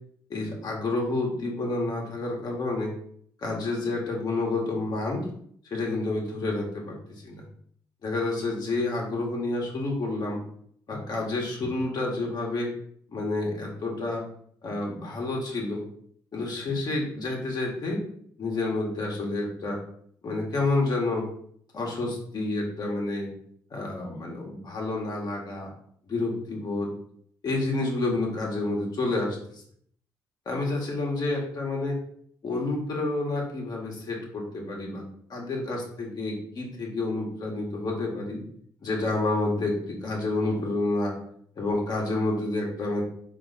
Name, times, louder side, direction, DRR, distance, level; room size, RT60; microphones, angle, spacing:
voice 1, 0.3-2.9 3.4-5.3 5.6-7.0 7.2-7.4 8.0-10.4 10.9-12.7 13.1-14.2 14.6-15.8 16.3-18.0 18.4-19.8 20.2-21.3 21.7-23.3 23.7-25.7 26.0-26.9 27.4-29.6 30.4-32.0 32.4-35.0 35.3-38.4 38.8-41.1 41.6-43.0, left 2 dB, 50° left, -1 dB, 1.4 m, -29 dB
4.0 x 3.0 x 4.0 m, 0.63 s
supercardioid pair, 60°, 9 cm